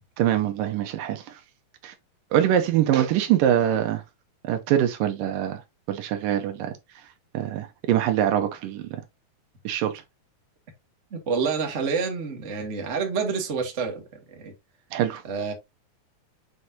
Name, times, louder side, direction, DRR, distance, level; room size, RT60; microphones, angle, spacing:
voice 1, 0.2-1.4 1.8-1.9 2.3-4.0 4.4-5.6 5.9-6.7 7.3-9.0 9.6-10.0 14.9-15.2, right 11 dB, 75° right, 2.4 m, -24 dB
voice 2, 11.1-14.0 14.3-14.5 15.2-15.5, right 5 dB, 35° right, 1.2 m, -28 dB
8.1 x 4.6 x 2.7 m
omnidirectional pair, 4.1 m